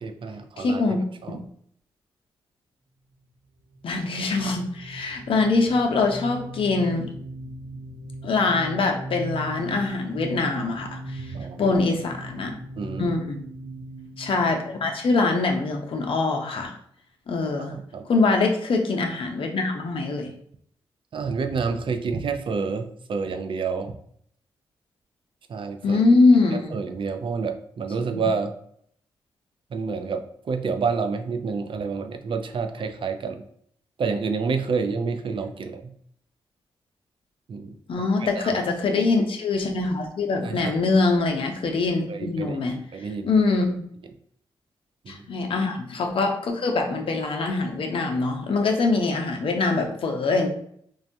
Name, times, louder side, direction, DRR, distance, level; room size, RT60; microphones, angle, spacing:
voice 1, 0.0-1.4 11.3-11.8 12.8-13.2 17.6-18.1 21.1-23.9 25.5-26.0 26.5-28.5 29.7-33.4 34.0-35.9 37.5-37.8 38.2-38.6 40.4-40.7 42.1-43.3 45.0-45.3, right 5 dB, 55° right, 7 dB, 0.4 m, -29 dB
voice 2, 0.6-1.0 1.3-1.4 3.8-7.1 8.2-11.3 11.6-12.5 13.0-13.4 14.2-16.7 17.3-17.7 18.1-20.3 25.8-26.7 28.1-28.2 37.9-42.8 43.2-43.8 45.1-50.5, left 3 dB, 60° left, 3 dB, 0.6 m, -23 dB
sound 1, 3.7-16.2, right 1 dB, 75° right, 1.2 m, -39 dB
3.3 x 2.2 x 2.6 m, 0.66 s
supercardioid pair, 50°, 10 cm